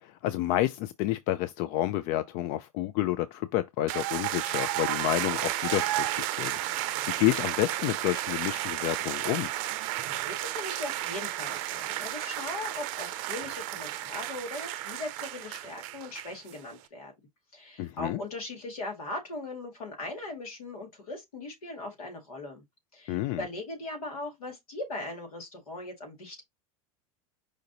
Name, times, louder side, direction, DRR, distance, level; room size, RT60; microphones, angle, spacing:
voice 1, 0.0-9.5 17.8-18.2 23.1-23.5, left 15 dB, 55° left, 0.4 m, -30 dB
sound 1, 3.9-16.6, right 15 dB, 55° right, 0.5 m, -33 dB
voice 2, 9.8-17.1 17.5-22.6 22.9-26.4, left 2 dB, 85° left, 2.1 m, -39 dB
5.0 x 2.6 x 4.0 m
hypercardioid pair, 90°, 18 cm